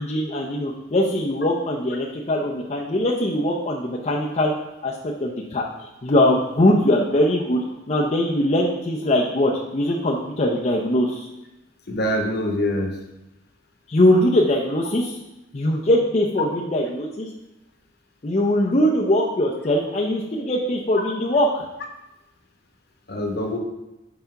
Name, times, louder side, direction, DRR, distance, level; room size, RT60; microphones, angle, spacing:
voice 1, 0.0-4.5 4.8-7.6 7.9-11.3 13.9-15.2 15.5-17.3 18.2-21.6, left 1 dB, 35° left, -2 dB, 0.6 m, -21 dB
voice 2, 11.9-12.9 23.1-23.6, left 1 dB, 55° left, 3 dB, 1.1 m, -24 dB
5.7 x 4.2 x 5.7 m, 0.94 s
head